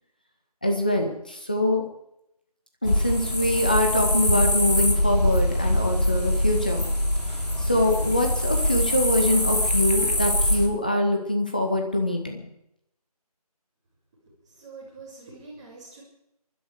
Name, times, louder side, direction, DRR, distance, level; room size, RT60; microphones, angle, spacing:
voice 1, 0.6-1.9 2.8-6.9 7.6-12.4, left 1 dB, 15° left, 3 dB, 0.9 m, -24 dB
sound 1, 2.8-10.7, left 1 dB, 90° left, 3.0 m, -23 dB
voice 2, 14.2-16.0, right 3 dB, 10° right, -7 dB, 2.7 m, -45 dB
24.5 x 11.5 x 4.7 m, 0.81 s
figure-of-eight pair, 170°, 20 cm